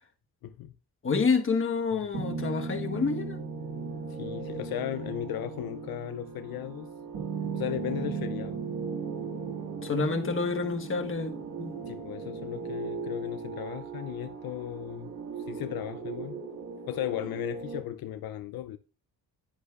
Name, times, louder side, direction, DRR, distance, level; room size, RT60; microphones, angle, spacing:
voice 1, 0.4-0.7 1.9-2.0 4.2-6.9 7.5-8.6 11.8-15.1 15.5-16.4 16.9-18.8, left 12 dB, 75° left, 0.6 m, -36 dB
voice 2, 1.0-3.4 9.8-11.8, left 4 dB, 35° left, 1.4 m, -28 dB
sound 1, 2.1-17.8, right 5 dB, 60° right, 2.0 m, -37 dB
10.0 x 9.9 x 2.4 m
cardioid pair, 110°, 36 cm